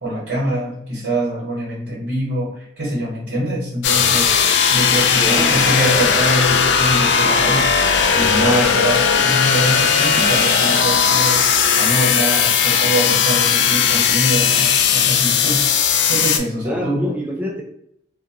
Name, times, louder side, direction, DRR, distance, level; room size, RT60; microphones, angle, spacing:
voice 1, 0.0-4.3 4.7-7.9 8.1-15.6 16.1-17.0, right 1 dB, 65° right, -8 dB, 1.0 m, -24 dB
sound 1, 3.8-16.4, left 6 dB, 75° left, 0.3 m, -17 dB
voice 2, 5.2-5.7 16.6-17.6, left 1 dB, 10° right, -4 dB, 0.6 m, -26 dB
2.5 x 2.1 x 2.7 m, 0.71 s
head